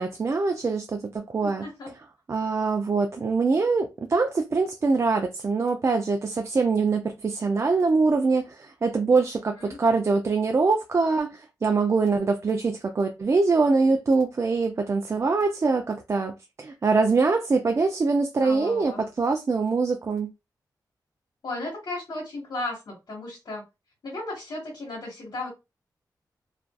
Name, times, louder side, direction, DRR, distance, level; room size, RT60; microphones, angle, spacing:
voice 1, 0.0-1.7 2.3-16.3 16.6-20.3, right 4 dB, 40° right, 0.3 m, -23 dB
voice 2, 1.4-1.9 9.6-9.8 18.4-19.0 21.4-23.6 24.0-25.5, left 2 dB, 65° left, 1.3 m, -35 dB
2.4 x 2.4 x 2.2 m
wide cardioid pair, 85°, 7 cm